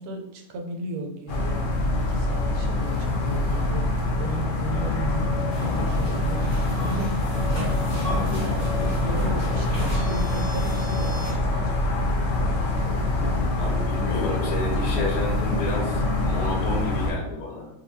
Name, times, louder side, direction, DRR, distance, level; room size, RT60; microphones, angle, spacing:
voice 1, 0.0-7.1 7.5-11.8, right 2 dB, 90° right, 3 dB, 1.1 m, -35 dB
sound 1, 1.3-17.1, left 2 dB, 60° left, 0.5 m, -25 dB
sound 2, 5.5-11.3, equal, 10° left, 1.4 m, -35 dB
voice 2, 8.0-8.4 13.6-17.7, left 2 dB, 85° left, -1 dB, 1.2 m, -31 dB
4.0 x 2.4 x 2.7 m, 0.82 s
omnidirectional pair, 1.5 m